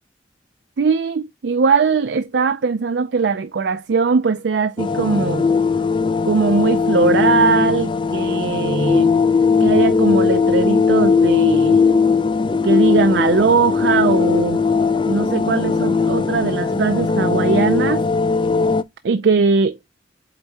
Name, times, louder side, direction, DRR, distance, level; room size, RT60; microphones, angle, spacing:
voice 1, 0.8-5.5 6.2-9.1 9.6-11.8 12.6-14.6 15.1-18.0 19.0-19.8, right 4 dB, 75° right, 0.4 m, -19 dB
sound 1, 4.8-18.8, left 5 dB, 30° left, 0.4 m, -18 dB
7.9 x 4.6 x 2.8 m
head